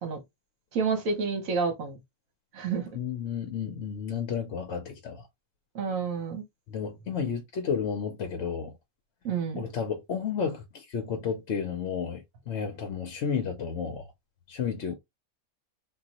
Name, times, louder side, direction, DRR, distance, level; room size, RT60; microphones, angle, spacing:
voice 1, 0.7-2.0 2.5-2.9 5.7-6.4 9.2-9.7, right 5 dB, 65° right, 1.4 m, -29 dB
voice 2, 2.9-5.2 6.7-8.7 9.6-14.1 14.5-14.9, left 6 dB, 60° left, 0.8 m, -32 dB
3.8 x 2.4 x 2.8 m
omnidirectional pair, 1.5 m